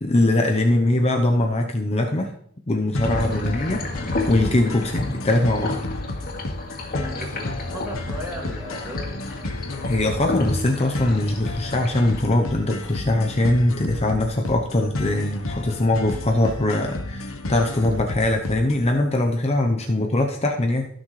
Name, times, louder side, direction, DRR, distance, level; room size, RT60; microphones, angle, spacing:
voice 1, 0.0-2.3 2.7-3.8 4.3-5.8 9.8-20.9, left 1 dB, 30° left, 2 dB, 0.8 m, -21 dB
sound 1, 2.9-18.9, left 2 dB, 70° left, 1.0 m, -32 dB
sound 2, 3.0-12.2, left 2 dB, 50° left, 2.3 m, -31 dB
voice 2, 6.9-9.2 19.8-20.0, equal, 10° right, -1 dB, 2.2 m, -37 dB
16.0 x 6.4 x 3.2 m, 0.66 s
head